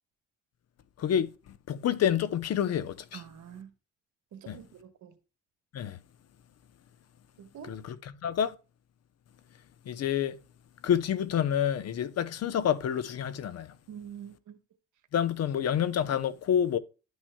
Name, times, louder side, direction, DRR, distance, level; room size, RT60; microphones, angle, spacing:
voice 1, 1.0-1.3 1.7-3.2 4.5-4.6 5.7-6.0 7.7-8.5 9.9-10.4 10.8-13.7 15.1-16.8, left 9 dB, 55° left, 0.7 m, -28 dB
voice 2, 3.1-3.7 4.3-5.2 7.4-7.8 13.9-14.6, right 9 dB, 75° right, 1.2 m, -46 dB
11.0 x 6.2 x 2.2 m
cardioid pair, 90°, 30 cm